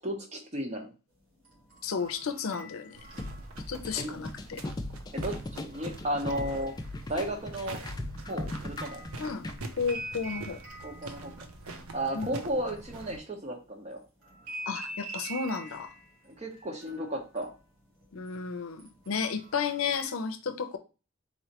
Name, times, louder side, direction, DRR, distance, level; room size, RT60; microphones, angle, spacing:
voice 1, 0.0-0.9 4.0-4.1 5.1-6.7 7.1-7.8 8.3-9.0 10.8-11.5 11.9-14.0 16.2-17.5, right 1 dB, 30° right, 2 dB, 0.9 m, -34 dB
sound 1, 1.4-4.0 5.2-7.3 7.6-13.5 14.2-18.4 18.8-20.0, right 2 dB, 65° right, 2.2 m, -46 dB
voice 2, 1.8-3.0 3.7-4.6 9.2-9.5 9.8-10.6 12.1-12.3 14.7-15.9 18.1-20.8, left 5 dB, 75° left, 9 dB, 0.5 m, -33 dB
sound 2, 2.9-13.2, right 2 dB, 85° right, 0.7 m, -45 dB
sound 3, 3.2-9.6, left 1 dB, 20° left, 0.3 m, -38 dB
4.2 x 3.1 x 2.9 m, 0.32 s
head